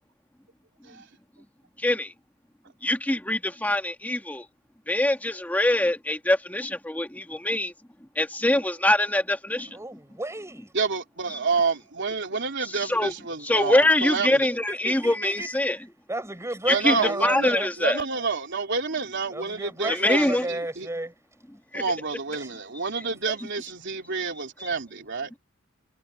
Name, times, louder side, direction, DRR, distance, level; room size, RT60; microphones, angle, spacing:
voice 1, 2.8-4.4 4.9-7.7 8.2-9.7 12.9-13.1 13.5-15.8 16.7-16.9 17.2-18.0 19.9-20.5 21.7-21.8, left 1 dB, 10° left, 1.9 m, -23 dB
voice 2, 9.7-10.7 14.7-15.7 16.1-17.7 19.3-21.1 23.0-23.4, right 1 dB, 15° right, 7.4 m, -32 dB
voice 3, 10.7-14.6 16.7-20.9 21.7-25.3, right 4 dB, 60° right, 3.6 m, -29 dB
head